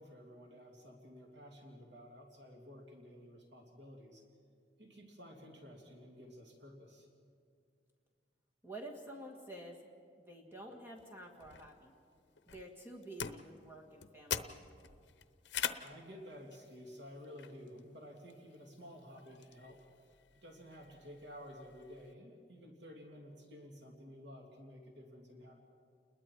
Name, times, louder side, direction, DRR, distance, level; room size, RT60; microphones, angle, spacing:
voice 1, 0.0-4.2 4.8-7.1 15.8-19.8 20.4-25.5, equal, 75° right, 0 dB, 2.7 m, -53 dB
voice 2, 8.6-9.8 10.2-11.9 12.5-14.6, right 1 dB, 15° right, -1 dB, 1.9 m, -50 dB
sound 1, 11.0-22.1, left 8 dB, 65° left, 0.8 m, -46 dB
30.0 x 21.5 x 4.6 m, 2.2 s
head